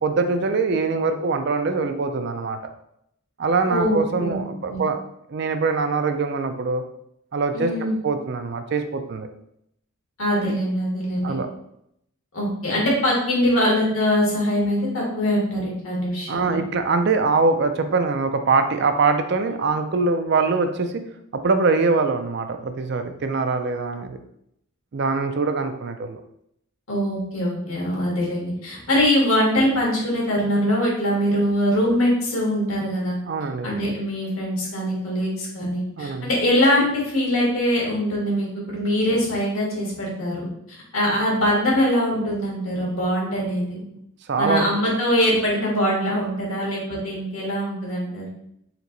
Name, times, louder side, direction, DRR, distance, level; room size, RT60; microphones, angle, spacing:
voice 1, 0.0-2.7 3.4-5.0 5.3-6.8 7.3-7.7 8.0-9.3 11.2-11.5 16.3-21.0 21.3-24.2 24.9-26.2 33.3-33.7 36.0-36.3 44.3-44.7, right 4 dB, 50° right, 7 dB, 0.4 m, -23 dB
voice 2, 3.7-4.3 4.6-4.8 7.5-7.9 10.2-11.4 12.3-16.6 26.9-33.2 33.6-43.8 44.4-48.2, equal, 75° left, -4 dB, 1.8 m, -23 dB
4.4 x 2.9 x 3.9 m, 0.75 s
head